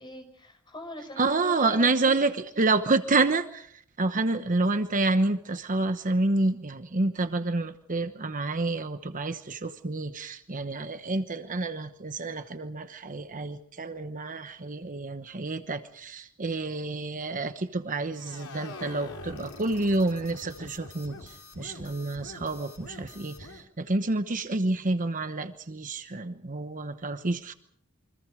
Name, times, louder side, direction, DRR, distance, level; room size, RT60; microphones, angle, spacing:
voice 1, 0.0-2.2, left 1 dB, 20° left, 5 dB, 5.7 m, -41 dB
voice 2, 1.2-27.5, right 2 dB, 40° right, 9 dB, 1.0 m, -28 dB
sound 1, 18.1-23.6, left 2 dB, 90° left, 3.4 m, -45 dB
28.5 x 25.0 x 5.0 m, 0.63 s
head